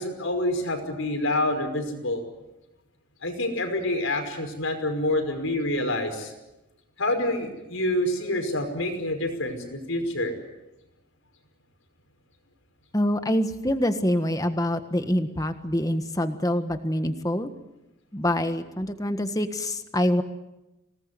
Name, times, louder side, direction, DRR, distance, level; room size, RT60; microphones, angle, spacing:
voice 1, 0.0-2.2 3.2-6.3 7.0-10.3, left 1 dB, 85° left, 5 dB, 5.6 m, -27 dB
voice 2, 12.9-17.5 18.1-20.2, left 1 dB, 15° left, 8 dB, 1.5 m, -25 dB
25.5 x 19.0 x 9.6 m, 0.98 s
head